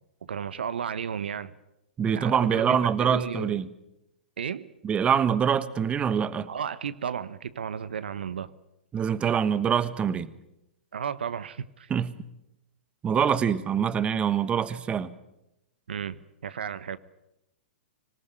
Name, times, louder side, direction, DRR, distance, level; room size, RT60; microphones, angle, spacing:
voice 1, 0.2-1.5 2.1-3.6 4.4-4.7 6.5-8.5 10.9-11.9 15.9-17.0, right 7 dB, 70° right, 1.1 m, -33 dB
voice 2, 2.0-3.7 4.8-6.5 8.9-10.3 11.9-12.1 13.0-15.1, right 7 dB, 20° right, 1.3 m, -25 dB
26.0 x 19.0 x 9.3 m
figure-of-eight pair, 110°, 6 cm